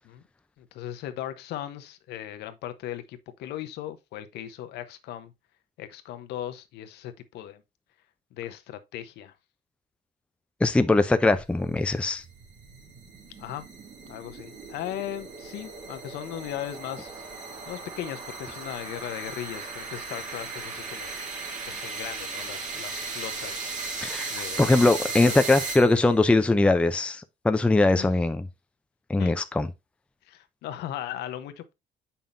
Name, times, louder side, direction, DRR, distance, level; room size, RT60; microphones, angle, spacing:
voice 1, 0.6-5.3 5.8-7.6 8.3-9.3 13.4-13.7 14.1-21.1 21.7-23.8 24.3-24.9 25.2-25.4 28.0-28.1 29.2-29.3 30.3-31.7, left 12 dB, 80° left, 0.9 m, -38 dB
voice 2, 10.6-12.2 24.0-28.5 29.1-29.7, left 2 dB, 5° left, 0.5 m, -21 dB
sound 1, 11.4-26.2, right 4 dB, 45° right, 2.7 m, -37 dB
7.1 x 5.6 x 2.6 m
cardioid pair, 110°, 17 cm